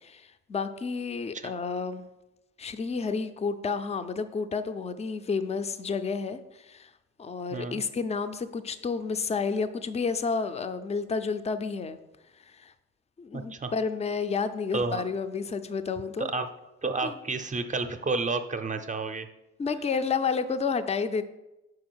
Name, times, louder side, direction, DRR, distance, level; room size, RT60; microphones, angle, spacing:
voice 1, 0.0-2.1 2.6-6.9 7.2-12.0 12.5-12.7 13.2-16.3 17.0-17.1 19.6-21.2, left 5 dB, 20° left, 11 dB, 0.4 m, -30 dB
voice 2, 7.5-7.8 13.3-13.7 14.7-15.0 16.2-16.5 16.8-19.3, right 3 dB, 25° right, 8 dB, 0.6 m, -30 dB
4.9 x 4.8 x 6.2 m, 0.96 s
cardioid pair, 90°, 30 cm